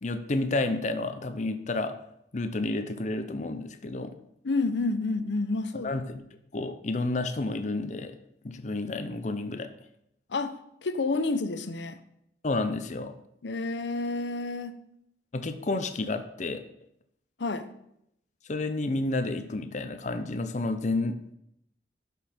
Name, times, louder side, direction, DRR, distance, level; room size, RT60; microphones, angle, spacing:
voice 1, 0.0-2.0 2.3-4.2 5.8-6.2 6.5-8.2 8.4-9.7 12.4-13.2 15.3-16.6 18.5-21.3, left 2 dB, 45° left, 9 dB, 0.6 m, -30 dB
voice 2, 4.4-5.9 10.3-12.0 13.4-14.8 17.4-17.7, left 3 dB, 85° left, 11 dB, 0.7 m, -29 dB
12.0 x 5.4 x 4.3 m, 0.77 s
head